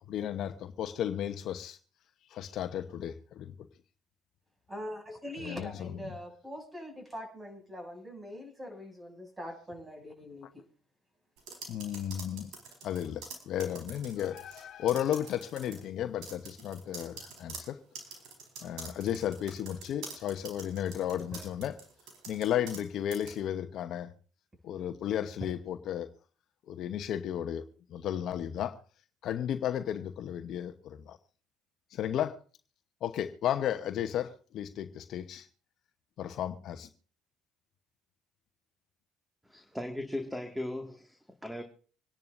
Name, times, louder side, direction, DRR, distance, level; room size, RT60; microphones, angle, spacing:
voice 1, 0.1-1.8 2.3-3.5 5.4-5.9 11.7-12.5 12.8-17.8 18.6-21.8 22.3-24.1 24.6-26.1 26.7-27.6 27.9-28.8 29.2-31.2 31.9-32.4 33.0-35.5 36.2-36.9, left 10 dB, 60° left, 8 dB, 1.0 m, -34 dB
voice 2, 4.7-10.6 21.3-21.4, left 1 dB, 20° right, 4 dB, 6.6 m, -43 dB
sound 1, 11.4-14.6 14.9-15.8 16.2-22.8 23.1-23.4, right 4 dB, 70° right, 4.6 m, -45 dB
voice 3, 39.4-41.6, left 1 dB, 5° right, 4 dB, 1.9 m, -38 dB
26.0 x 10.5 x 2.6 m, 0.40 s
hypercardioid pair, 65°, 0 cm